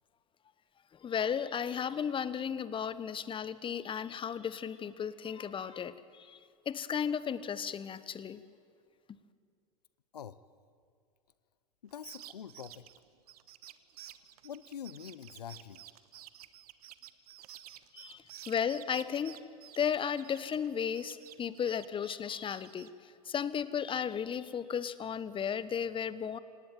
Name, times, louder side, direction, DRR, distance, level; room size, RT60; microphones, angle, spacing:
voice 1, 1.0-6.4 6.7-8.4 17.9-19.4 19.8-22.9 23.2-26.4, left 7 dB, 25° left, 16 dB, 1.2 m, -34 dB
voice 2, 11.8-12.9 14.4-15.8, left 8 dB, 90° left, 17 dB, 0.7 m, -45 dB
sound 1, 11.9-20.7 20.9-22.9, right 13 dB, 75° right, 1.2 m, -51 dB
28.0 x 18.0 x 9.2 m, 2.3 s
hypercardioid pair, 85°, 20 cm